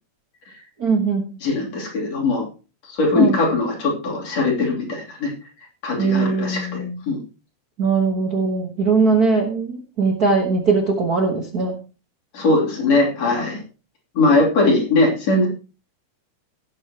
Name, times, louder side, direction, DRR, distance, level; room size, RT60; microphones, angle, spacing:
voice 1, 0.8-1.2 3.1-3.4 6.0-7.0 7.8-11.8, right 4 dB, 45° right, 2 dB, 1.3 m, -20 dB
voice 2, 1.4-2.5 2.8-5.3 5.8-7.2 12.3-13.6 14.2-15.5, left 2 dB, 60° left, -1 dB, 4.1 m, -20 dB
17.5 x 8.2 x 2.9 m, 0.33 s
omnidirectional pair, 3.3 m